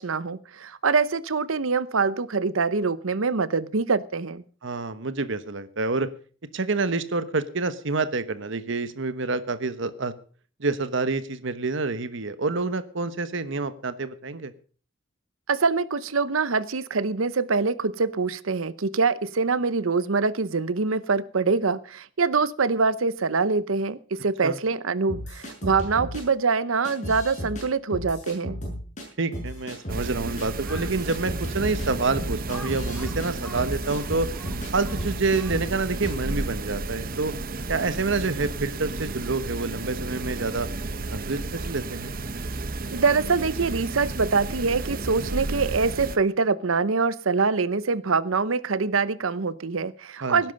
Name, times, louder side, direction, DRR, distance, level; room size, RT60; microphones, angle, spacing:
voice 1, 0.0-4.4 15.5-28.6 42.9-50.5, right 4 dB, 85° right, 17 dB, 0.8 m, -24 dB
voice 2, 4.6-6.1 6.5-10.1 10.6-14.5 24.4-24.6 29.2-34.3 34.7-37.3 37.7-40.7 41.1-42.2 50.2-50.4, right 3 dB, 65° right, 13 dB, 1.2 m, -27 dB
sound 1, 25.1-26.2 26.8-27.6 27.9-29.0 29.3-30.1 30.4-30.5 30.7-34.7 35.0-35.7 36.0-36.2, equal, 40° left, 6.8 m, -34 dB
sound 2, 29.9-46.2, right 2 dB, 45° right, 0.9 m, -32 dB
Crow, 30.6-31.0 31.6-31.7 32.5-35.9, equal, ahead, 2.8 m, -45 dB
17.5 x 10.5 x 5.3 m, 0.41 s
head